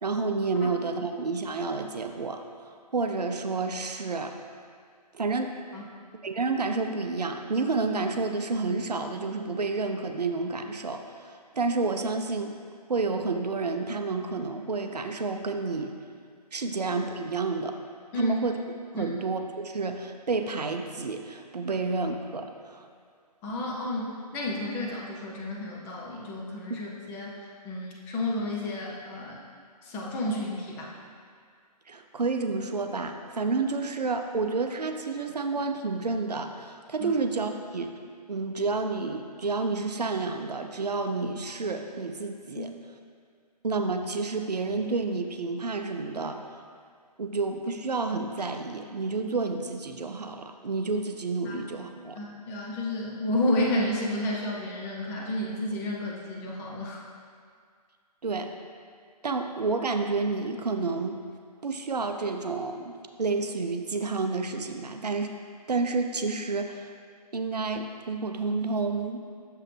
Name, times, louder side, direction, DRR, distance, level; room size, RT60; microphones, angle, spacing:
voice 1, 0.0-2.4 2.9-4.3 5.1-5.5 6.2-12.5 12.9-15.9 16.5-17.8 18.1-18.6 18.9-22.9 31.9-37.9 38.3-42.7 43.6-46.4 47.2-52.2 58.2-58.5 59.2-61.2 61.6-62.9 63.2-65.3 65.7-66.9 67.3-69.2, right 3 dB, 75° right, 5 dB, 0.5 m, -30 dB
voice 2, 23.4-29.4 29.8-30.9 37.0-37.1 42.5-42.7 51.4-51.5 52.1-57.0, left 1 dB, 10° left, -3 dB, 0.4 m, -31 dB
6.6 x 5.6 x 3.2 m, 2.1 s
figure-of-eight pair, 130°, 21 cm